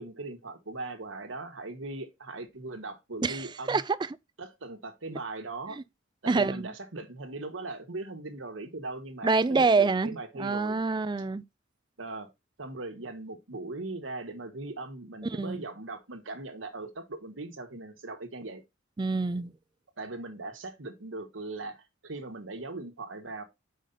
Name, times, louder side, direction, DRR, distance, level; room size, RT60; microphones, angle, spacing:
voice 1, 0.0-3.8 4.4-5.8 6.2-10.8 12.0-12.3 12.6-18.6 20.0-23.4, right 2 dB, 85° right, 1.3 m, -39 dB
voice 2, 3.2-3.8 6.3-6.7 9.2-11.4 15.3-15.6 19.0-19.5, right 4 dB, 25° right, 0.4 m, -26 dB
5.5 x 5.0 x 3.8 m
head